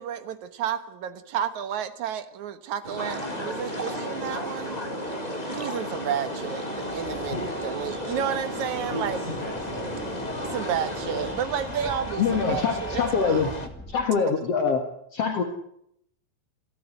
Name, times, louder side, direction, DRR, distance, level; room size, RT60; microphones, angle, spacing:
voice 1, 0.0-4.8 5.5-9.2 10.4-13.7, right 9 dB, 75° right, 12 dB, 2.7 m, -31 dB
sound 1, 2.8-11.4, right 1 dB, 15° right, 2.6 m, -35 dB
sound 2, 3.0-13.7, left 2 dB, 20° left, 1.3 m, -37 dB
sound 3, 6.8-14.0, equal, ahead, 1.7 m, -43 dB
voice 2, 7.3-7.7 8.9-10.5, left 1 dB, 85° left, -1 dB, 8.4 m, -37 dB
voice 3, 12.2-13.5 13.9-14.8 15.1-15.4, left 5 dB, 55° left, 5 dB, 2.6 m, -24 dB
27.0 x 13.5 x 8.3 m, 0.73 s
omnidirectional pair, 3.5 m